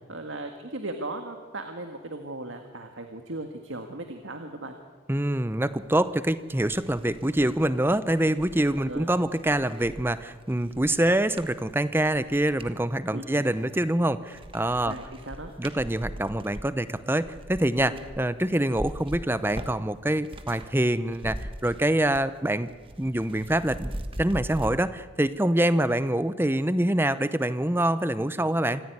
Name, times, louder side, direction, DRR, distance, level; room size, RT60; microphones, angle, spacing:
voice 1, 0.1-4.8 8.7-9.1 13.1-13.5 14.8-15.5 17.9-18.0, right 2 dB, 80° right, 5 dB, 1.9 m, -37 dB
voice 2, 5.1-14.9 15.6-22.7 23.0-23.9 24.2-28.8, right 1 dB, 10° right, 14 dB, 0.7 m, -25 dB
sound 1, 6.1-6.2 6.6-12.8 13.3-14.0 14.3-20.7 21.0-22.4 22.6-24.7, right 1 dB, 25° right, 1.4 m, -41 dB
26.0 x 15.0 x 9.6 m, 1.4 s
head